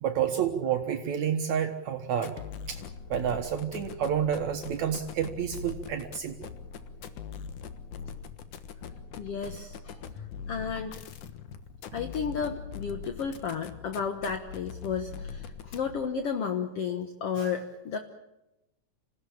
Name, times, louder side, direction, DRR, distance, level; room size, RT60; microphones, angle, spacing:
voice 1, 0.0-2.4 2.7-2.8 3.1-6.5, right 8 dB, 70° right, 5 dB, 2.6 m, -29 dB
sound 1, 2.2-16.1, left 6 dB, 85° left, 2.9 m, -42 dB
voice 2, 9.2-10.0 10.5-10.9 11.9-18.0, left 6 dB, 55° left, 6 dB, 2.1 m, -33 dB
27.0 x 17.0 x 8.7 m, 0.92 s
omnidirectional pair, 3.5 m